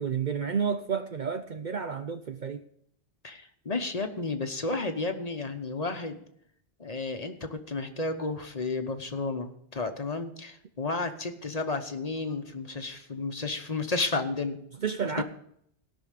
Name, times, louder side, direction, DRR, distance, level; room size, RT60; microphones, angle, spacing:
voice 1, 0.0-2.6 14.8-15.2, right 6 dB, 50° right, 0.6 m, -30 dB
voice 2, 3.2-6.2 6.8-14.6 15.2-15.3, left 3 dB, 35° left, 1.0 m, -32 dB
17.5 x 6.2 x 6.6 m
omnidirectional pair, 1.2 m